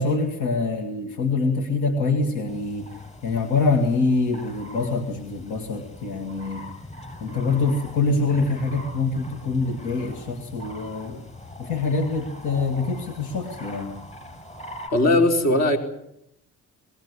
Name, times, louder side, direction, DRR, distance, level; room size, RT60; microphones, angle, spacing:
voice 1, 0.0-2.9 3.2-6.6 7.2-11.2 11.6-13.9, left 3 dB, 85° left, 6 dB, 2.3 m, -25 dB
sound 1, 2.5-14.9, left 1 dB, 20° left, 7.5 m, -41 dB
voice 2, 14.9-15.8, left 1 dB, 60° left, 4 dB, 4.6 m, -18 dB
21.0 x 17.5 x 9.7 m, 0.78 s
cardioid pair, 90°, 30 cm